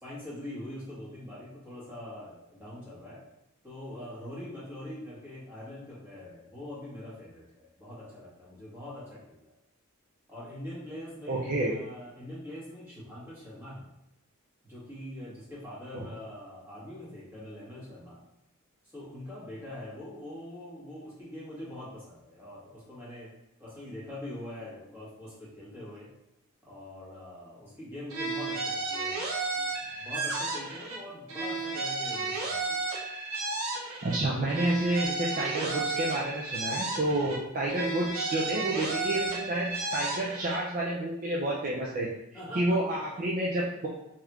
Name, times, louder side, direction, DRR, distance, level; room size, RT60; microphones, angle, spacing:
voice 1, 0.0-3.2 3.6-9.5 10.3-13.8 14.6-18.2 18.9-23.3 23.6-26.1 26.6-29.2 29.5-32.8 37.2-37.3 42.3-43.0, left 1 dB, 10° right, -9 dB, 1.4 m, -43 dB
voice 2, 11.3-11.7 15.9-16.1 34.0-42.1 42.5-43.9, right 1 dB, 40° right, -4 dB, 0.4 m, -29 dB
sound 1, 28.1-31.0 31.3-34.2 34.5-37.4 37.7-40.6, right 3 dB, 75° right, 0.7 m, -33 dB
3.3 x 2.9 x 2.4 m, 0.87 s
head